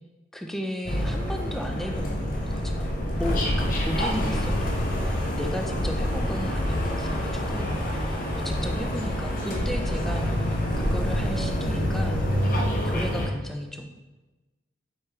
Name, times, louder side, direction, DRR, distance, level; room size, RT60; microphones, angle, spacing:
voice 1, 0.3-12.6 12.8-13.9, equal, ahead, 3 dB, 0.4 m, -35 dB
sound 1, 0.9-13.3, equal, 50° left, 0.7 m, -26 dB
4.7 x 3.1 x 3.3 m, 1.1 s
head